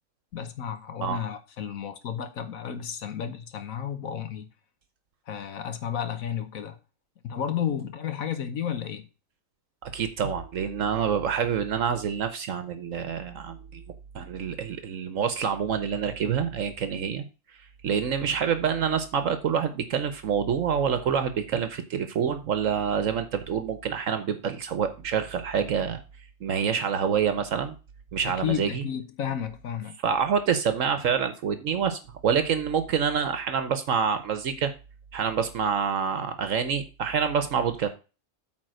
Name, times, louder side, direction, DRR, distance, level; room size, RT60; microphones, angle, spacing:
voice 1, 0.3-4.5 5.3-6.8 7.2-9.1 28.2-30.0, left 8 dB, 80° left, 1.3 m, -32 dB
voice 2, 9.8-13.8 14.1-17.2 17.8-26.0 26.4-27.7 28.1-28.8 30.0-34.7 35.1-37.9, right 7 dB, 70° right, 1.2 m, -27 dB
8.9 x 4.1 x 6.3 m
omnidirectional pair, 1.4 m